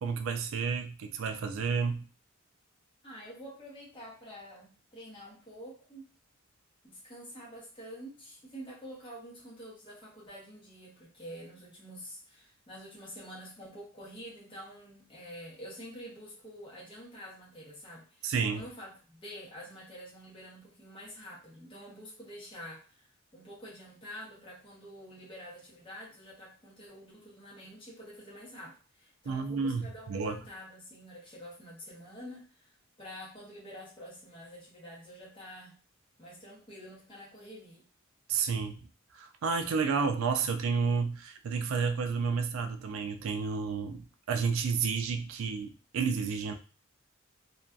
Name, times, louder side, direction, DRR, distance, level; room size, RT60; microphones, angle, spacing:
voice 1, 0.0-2.0 18.2-18.6 29.3-30.4 38.3-38.8 39.1-46.5, right 5 dB, 70° right, 7 dB, 0.3 m, -31 dB
voice 2, 3.0-6.1 6.8-18.3 18.5-23.0 23.3-32.7 33.0-35.7 36.2-37.8, equal, 25° left, -5 dB, 0.8 m, -47 dB
2.5 x 2.3 x 2.2 m, 0.36 s
head